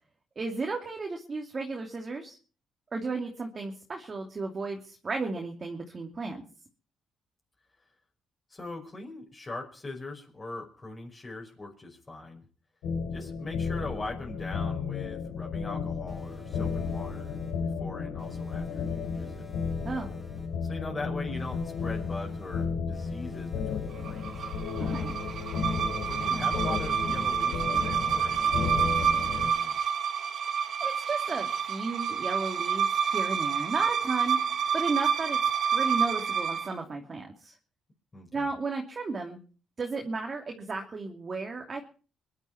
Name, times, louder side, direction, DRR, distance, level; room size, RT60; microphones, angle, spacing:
voice 1, 0.4-2.4 2.9-6.4 19.8-20.2 24.8-25.1 30.8-34.4 34.7-37.5 38.3-39.4 39.8-41.8, right 3 dB, 35° right, 2 dB, 2.8 m, -34 dB
voice 2, 8.5-12.4 13.1-19.5 20.6-24.5 26.0-29.8 38.1-38.5, left 2 dB, 25° left, -2 dB, 5.4 m, -41 dB
sound 1, 12.8-29.5, left 5 dB, 90° left, 7.5 m, -33 dB
sound 2, 16.1-17.7 18.2-20.7 21.4-27.8, equal, 5° left, 6.0 m, -49 dB
sound 3, 24.0-36.7, right 7 dB, 60° right, 1.6 m, -28 dB
23.0 x 11.5 x 4.7 m, 0.40 s
cardioid pair, 90°, 0 cm